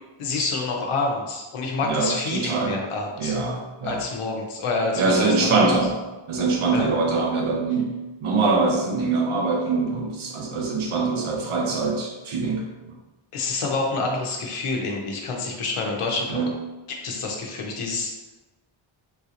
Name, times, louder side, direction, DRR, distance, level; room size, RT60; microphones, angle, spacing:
voice 1, 0.2-3.4 3.8-5.5 6.7-6.9 13.3-16.4 16.9-18.1, left 3 dB, 85° left, 0 dB, 0.8 m, -27 dB
voice 2, 1.8-2.8 3.2-4.0 5.0-6.0 6.3-12.9 16.3-16.5, right 3 dB, 80° right, 0 dB, 0.9 m, -23 dB
3.7 x 2.8 x 2.5 m, 1.1 s
wide cardioid pair, 120°, 49 cm